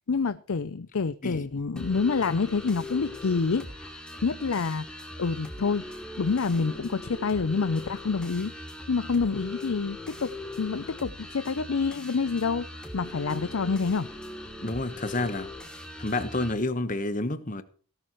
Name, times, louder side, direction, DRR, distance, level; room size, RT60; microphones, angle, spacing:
voice 1, 0.1-8.5 8.9-12.7 12.9-14.1, left 4 dB, 65° left, 0.6 m, -28 dB
sound 1, 1.8-16.5, left 1 dB, 5° left, 2.6 m, -40 dB
voice 2, 14.6-15.5 16.0-17.6, left 2 dB, 35° left, 1.2 m, -29 dB
18.0 x 12.0 x 3.1 m
head